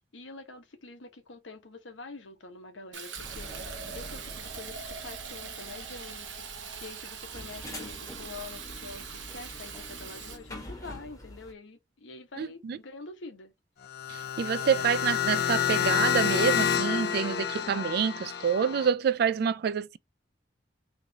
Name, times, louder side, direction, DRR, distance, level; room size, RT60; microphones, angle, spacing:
voice 1, 0.1-13.5, left 3 dB, 85° left, 1.1 m, -46 dB
Fill (with liquid), 2.9-10.4, right 6 dB, 90° right, 0.9 m, -42 dB
sound 1, 3.2-11.5, left 1 dB, 20° left, 1.2 m, -46 dB
voice 2, 12.4-12.8 14.1-20.0, right 7 dB, 55° right, 0.3 m, -27 dB
sound 2, 13.8-18.9, left 8 dB, 60° left, 0.6 m, -28 dB
3.6 x 3.2 x 2.8 m
head